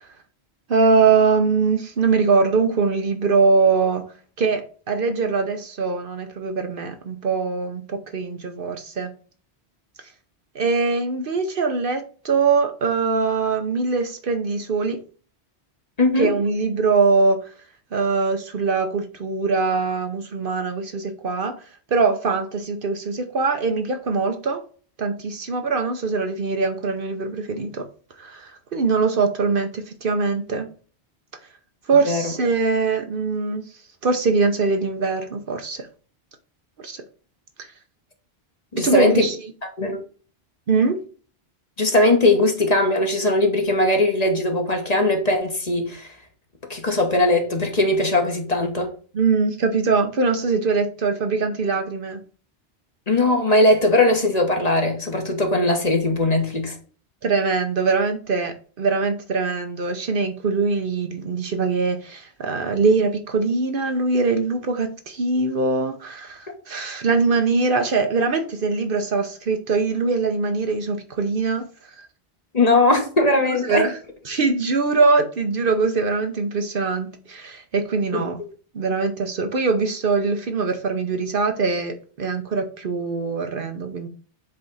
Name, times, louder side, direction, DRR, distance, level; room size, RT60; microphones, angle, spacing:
voice 1, 0.7-4.1 4.4-9.1 10.5-15.0 16.2-17.4 17.9-21.6 21.9-24.6 25.0-27.9 28.2-30.7 31.9-33.6 34.0-35.9 36.8-37.0 38.8-39.4 40.7-41.0 49.1-52.2 57.2-71.6 73.5-73.9 74.3-78.4 78.7-84.1, right 4 dB, 55° right, 0.9 m, -22 dB
voice 2, 16.0-16.3 32.1-32.3 38.7-39.3 39.8-40.0 41.8-46.1 46.7-48.9 53.1-56.8 72.5-73.8 78.1-78.3, left 2 dB, 35° left, 1.3 m, -19 dB
7.7 x 3.4 x 4.0 m
omnidirectional pair, 1.1 m